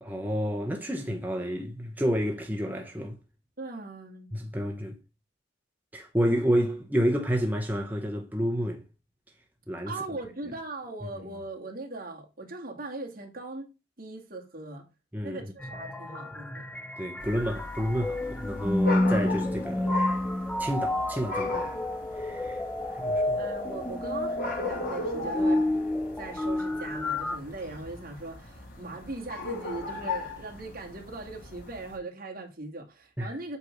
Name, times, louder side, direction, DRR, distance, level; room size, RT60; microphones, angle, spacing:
voice 1, 0.0-3.2 4.3-5.0 5.9-8.8 9.7-10.2 15.1-15.4 17.0-20.0 20.6-21.7 22.2-22.6 22.9-23.4 33.2-33.4, equal, 10° right, 0.9 m, -30 dB
voice 2, 3.6-4.3 9.9-13.7 14.0-14.9 15.2-16.7 23.4-25.7 26.2-33.6, right 2 dB, 50° right, 2.0 m, -39 dB
sound 1, 15.6-27.4, left 1 dB, 5° left, 0.5 m, -30 dB
sound 2, 17.2-32.0, left 3 dB, 50° left, 2.1 m, -38 dB
8.2 x 3.6 x 5.8 m
head